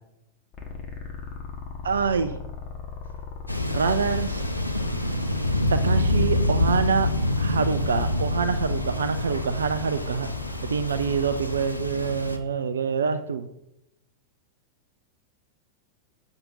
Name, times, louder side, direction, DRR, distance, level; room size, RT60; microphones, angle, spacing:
sound 1, 0.5-11.7, left 5 dB, 25° left, 1.3 m, -39 dB
voice 1, 1.8-2.4 3.7-4.4 5.7-7.1 7.4-10.3 10.7-13.5, right 5 dB, 70° right, 10 dB, 0.3 m, -26 dB
Thunder, 3.5-12.4, left 1 dB, 85° left, 0.4 m, -26 dB
7.1 x 2.6 x 5.4 m, 0.82 s
figure-of-eight pair, 90°, 0 cm